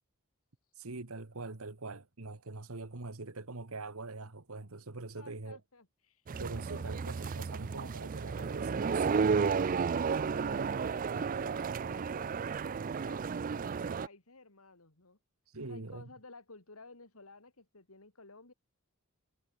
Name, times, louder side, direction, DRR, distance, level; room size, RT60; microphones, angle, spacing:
voice 1, 0.8-5.6 6.4-9.4 15.5-16.1, right 3 dB, 75° right, 1.6 m, -43 dB
voice 2, 5.1-6.3 6.7-6.8 10.2-13.3 13.5-15.2 15.7-18.5, left 3 dB, 75° left, 3.3 m, -55 dB
sound 1, 6.3-14.1, right 5 dB, 40° right, 0.4 m, -32 dB
head